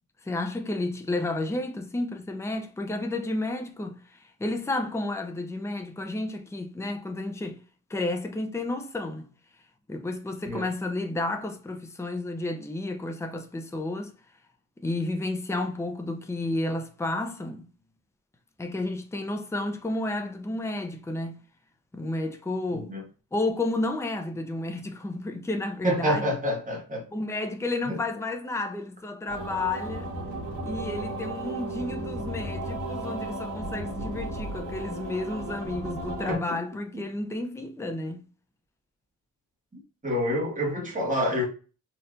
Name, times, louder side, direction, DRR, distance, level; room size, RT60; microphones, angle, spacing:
voice 1, 0.2-7.6 7.9-9.3 9.9-14.1 14.8-17.7 18.6-21.4 21.9-22.9 23.3-26.3 27.1-30.1 30.6-38.2, left 2 dB, 10° left, 0.6 m, -31 dB
voice 2, 25.8-27.0 27.8-28.0 36.3-36.4 36.9-37.0 40.0-41.5, equal, 25° right, 1.7 m, -27 dB
sound 1, 29.3-36.4, right 1 dB, 65° right, 1.7 m, -34 dB
4.3 x 3.1 x 2.6 m
wide cardioid pair, 110°, 32 cm